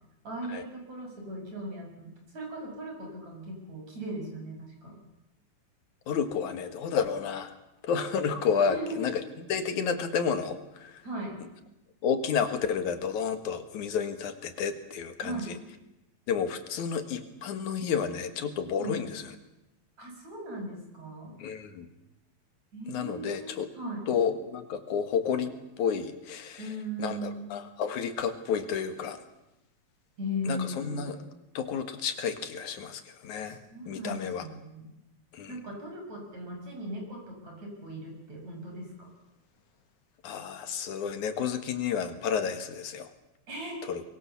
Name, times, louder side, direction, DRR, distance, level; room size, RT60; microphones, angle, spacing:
voice 1, 0.2-5.0 8.7-9.1 11.0-11.4 15.2-15.5 16.8-16.9 18.8-19.0 20.0-21.3 22.7-24.0 26.6-27.4 30.2-31.1 33.4-34.8 35.5-39.1 43.5-43.8, equal, 65° right, 1 dB, 7.7 m, -38 dB
voice 2, 6.1-7.5 7.8-9.2 9.5-11.0 12.0-15.6 16.3-19.3 21.4-21.9 22.9-23.7 24.1-26.7 27.0-29.2 30.5-31.2 31.5-33.6 33.9-34.4 35.3-35.6 40.2-43.1 43.9-44.0, left 7 dB, 80° left, 8 dB, 3.1 m, -31 dB
23.5 x 22.5 x 7.1 m, 0.91 s
omnidirectional pair, 3.4 m